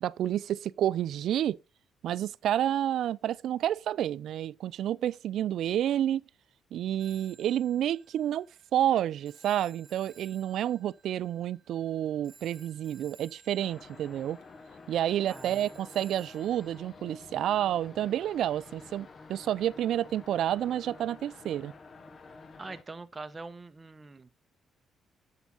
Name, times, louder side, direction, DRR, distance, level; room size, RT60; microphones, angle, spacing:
voice 1, 0.0-1.6 2.0-6.2 6.7-8.5 8.7-14.4 14.9-21.7, right 11 dB, 75° right, 0.3 m, -29 dB
Telephone, 7.0-16.8, right 5 dB, 40° right, 3.4 m, -58 dB
sound 1, 13.6-22.8, left 4 dB, 45° left, 1.0 m, -50 dB
voice 2, 15.3-15.7 22.6-24.3, right 3 dB, 25° right, 1.0 m, -43 dB
8.1 x 7.3 x 3.9 m
cardioid pair, 90°, 0 cm